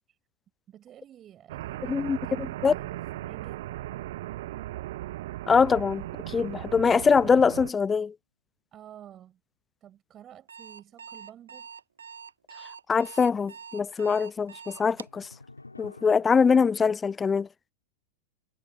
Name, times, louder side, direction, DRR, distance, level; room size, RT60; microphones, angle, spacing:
voice 1, 0.7-3.6 8.7-9.4 9.8-11.7, right 11 dB, 30° right, 6.1 m, -51 dB
sound 1, 1.5-7.7, right 15 dB, 55° right, 0.5 m, -37 dB
voice 2, 1.9-2.7 5.5-8.1 12.9-15.3 15.8-17.5, left 5 dB, 15° left, 0.4 m, -23 dB
sound 2, 4.8-6.5 6.8-6.9 14.2-16.9, left 2 dB, 80° left, 7.6 m, -53 dB
Alarm, 10.3-15.2, right 6 dB, 70° right, 1.5 m, -45 dB
figure-of-eight pair, 90°, 0 cm